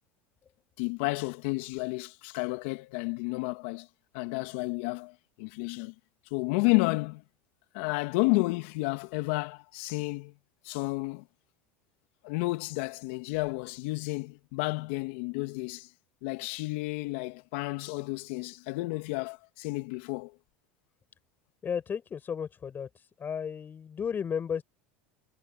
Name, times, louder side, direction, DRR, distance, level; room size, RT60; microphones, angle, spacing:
voice 1, 0.8-3.9 4.1-5.9 6.3-7.2 7.7-10.3 10.6-11.3 12.2-15.9 16.2-20.4, left 25 dB, 70° left, 2.4 m, -31 dB
voice 2, 21.6-24.6, left 7 dB, 30° left, 6.5 m, -34 dB
hypercardioid pair, 95°, 6 cm